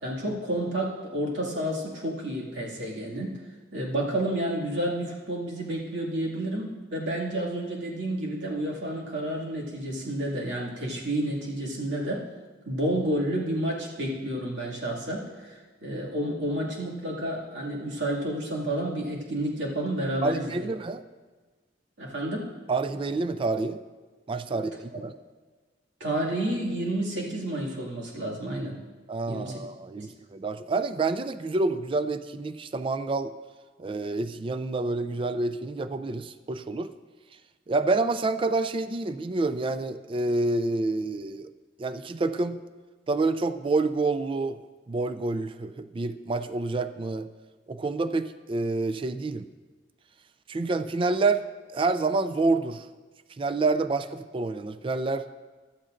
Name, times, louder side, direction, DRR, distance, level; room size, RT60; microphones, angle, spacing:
voice 1, 0.0-3.3 3.7-12.2 12.7-20.7 22.0-22.5 24.5-24.6 26.0-28.8 29.3-29.6 29.9-30.1, right 1 dB, 80° right, -3 dB, 2.2 m, -30 dB
voice 2, 20.2-21.0 22.7-23.8 24.3-25.1 29.1-33.3 33.8-36.9 37.7-41.5 41.8-42.6 43.1-44.6 44.9-47.3 47.7-49.4 50.5-51.4 51.7-52.8 53.4-55.3, right 3 dB, 30° right, 11 dB, 0.3 m, -28 dB
15.0 x 11.5 x 2.6 m, 1.3 s
head